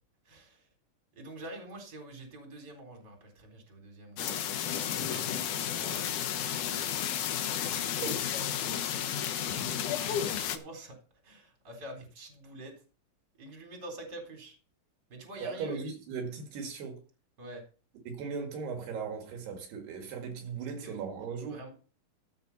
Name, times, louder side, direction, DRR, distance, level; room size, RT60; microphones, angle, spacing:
voice 1, 0.2-0.7 1.1-4.4 4.9-7.4 7.7-11.0 11.2-12.7 13.4-14.6 15.1-15.8 17.4-17.6 20.7-21.0 21.4-21.7, right 1 dB, 25° right, 4.0 m, -47 dB
sound 1, 4.2-10.6, left 9 dB, 65° left, 2.1 m, -32 dB
voice 2, 7.7-8.2 15.4-17.0 18.1-21.6, right 5 dB, 75° right, 3.9 m, -38 dB
14.0 x 8.0 x 4.1 m
omnidirectional pair, 4.7 m